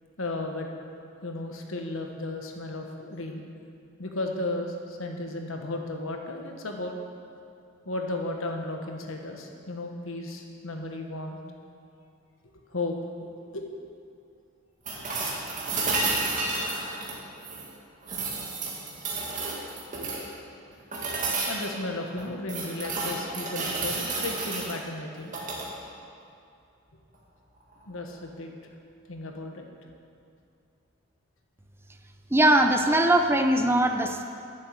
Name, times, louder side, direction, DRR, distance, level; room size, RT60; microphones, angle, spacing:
voice 1, 0.2-0.7 1.2-3.4 4.0-7.0 7.8-11.4 12.7-13.0 13.5-13.7 15.0-15.1 21.5-25.3 27.9-28.5 29.1-29.7, left 2 dB, 80° left, 3 dB, 1.4 m, -34 dB
sound 1, 14.8-17.7 18.0-20.3 20.9-21.7 22.2-24.7 25.2-25.7 27.7-27.8, right 3 dB, 40° right, 2.0 m, -31 dB
voice 2, 32.3-34.2, right 1 dB, 10° right, 6 dB, 0.5 m, -21 dB
11.0 x 7.6 x 8.0 m, 2.5 s
head